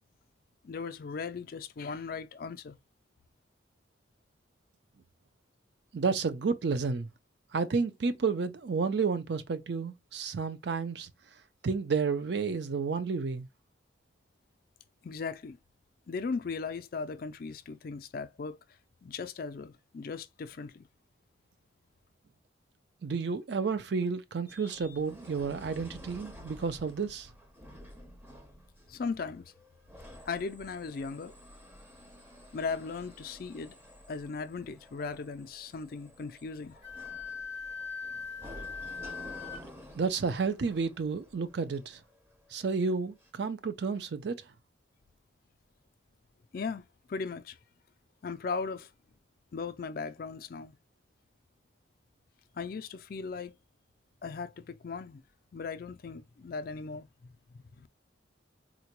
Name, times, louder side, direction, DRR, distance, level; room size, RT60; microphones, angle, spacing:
voice 1, 0.6-2.8 15.0-15.6 16.1-18.6 19.0-20.9 28.9-29.5 30.3-31.3 32.5-33.7 34.1-36.8 46.5-46.8 47.1-47.6 48.2-48.9 49.5-50.7 52.5-53.5 54.2-55.2 55.5-57.1 57.5-57.9, left 4 dB, 50° left, 0.4 m, -37 dB
voice 2, 5.9-7.1 7.5-11.1 11.6-13.5 23.0-27.3 39.9-42.0 42.5-44.4, right 5 dB, 60° right, 0.4 m, -31 dB
sound 1, 24.5-42.6 43.2-43.3, equal, 10° right, 0.6 m, -51 dB
Wind instrument woodwind instrument, 36.8-39.6, left 5 dB, 80° right, 2.3 m, -40 dB
3.8 x 2.2 x 2.9 m
head